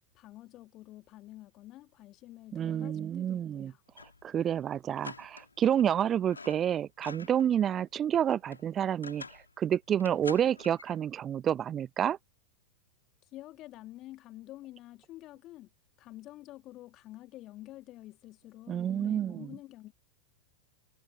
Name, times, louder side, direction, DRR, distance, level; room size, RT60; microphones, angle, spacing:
voice 1, 0.1-3.8 13.3-15.7 16.0-19.9, left 16 dB, 35° left, 2.3 m, -49 dB
voice 2, 2.5-3.7 4.2-9.2 9.6-12.2 18.7-19.5, right 9 dB, 25° right, 0.6 m, -29 dB
sound 1, 3.9-4.3 4.5-4.6 5.0-5.9 6.2-7.5 7.9-9.5 10.0-11.0, left 4 dB, 80° left, 2.5 m, -47 dB
figure-of-eight pair, 90°, 0 cm